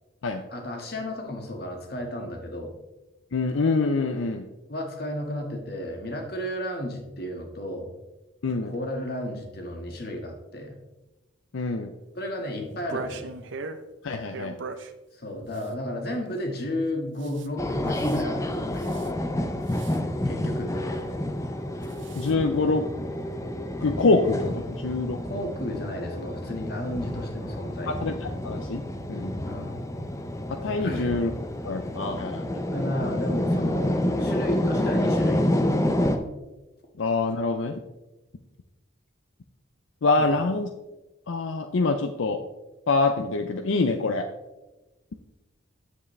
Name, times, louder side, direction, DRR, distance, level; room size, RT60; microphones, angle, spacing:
voice 1, 0.5-2.7 4.7-7.9 8.6-10.7 12.1-13.3 15.1-19.1 20.2-21.0 25.3-27.9 29.4-29.8 30.8-31.1 32.7-36.0 40.2-40.4, left 1 dB, 50° left, 2 dB, 1.6 m, -33 dB
voice 2, 3.3-4.5 8.4-8.7 11.5-11.9 14.0-14.6 22.1-22.8 23.8-25.2 27.9-28.8 29.1-29.3 30.5-31.3 31.6-32.6 37.0-37.8 40.0-40.7 41.3-42.4 42.9-44.3, left 3 dB, 80° left, 6 dB, 0.5 m, -25 dB
sound 1, 12.7-13.8 14.3-14.9 15.5-15.7 17.2-17.5 17.9-18.2 18.8-19.1 19.7-20.0 21.8-22.3, right 4 dB, 70° right, 0.6 m, -39 dB
sound 2, 17.6-36.2, left 1 dB, 15° left, 0.5 m, -29 dB
9.6 x 7.4 x 3.2 m, 1.1 s
head